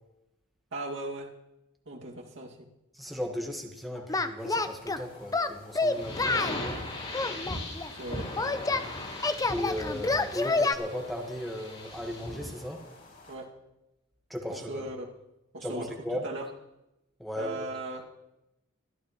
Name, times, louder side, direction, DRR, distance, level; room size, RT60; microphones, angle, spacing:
voice 1, 0.7-1.3 1.9-2.7 7.9-8.2 13.3-13.5 14.5-15.1 15.5-15.9 16.2-16.5 17.4-18.0, right 2 dB, 65° right, -1 dB, 2.3 m, -37 dB
voice 2, 3.0-6.8 9.5-12.8 14.3-14.8 15.6-16.2 17.2-17.6, left 1 dB, ahead, 1 dB, 1.4 m, -36 dB
Singing, 4.1-5.0 5.3-6.6 7.1-8.8 9.2-10.7, left 3 dB, 15° left, 0.5 m, -28 dB
sound 1, 4.4-13.4, left 2 dB, 50° left, 6.4 m, -54 dB
sound 2, 5.9-12.6, left 1 dB, 30° left, 4.9 m, -38 dB
24.5 x 12.5 x 3.1 m, 0.89 s
head